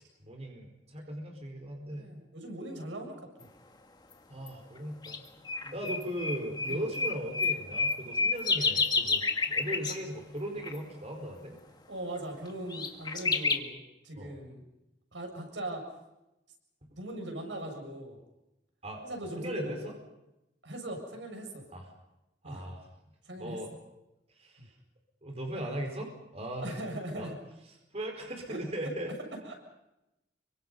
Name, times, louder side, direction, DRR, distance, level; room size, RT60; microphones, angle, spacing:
voice 1, 0.2-2.1 4.3-5.2 5.7-11.6 14.2-14.3 18.8-19.0 19.3-19.9 21.7-21.9 22.4-22.8 23.4-23.7 24.4-24.7 25.2-26.8 27.2-27.3 27.9-29.1, equal, 35° right, 3 dB, 4.7 m, -38 dB
voice 2, 1.9-3.3 5.6-5.8 6.7-6.8 11.9-14.6 15.1-15.9 17.0-18.2 19.0-19.8 20.6-21.6 22.4-22.7 23.2-23.6 24.6-24.7 26.6-27.4 28.5-28.6 29.3-29.6, right 1 dB, 90° right, 3 dB, 7.3 m, -40 dB
sound 1, 4.5-4.6 5.0-5.2 5.5-10.0 10.6-10.8 12.2-12.3 12.7-13.6, left 4 dB, 25° left, 2.0 m, -30 dB
27.5 x 24.5 x 5.6 m, 0.92 s
head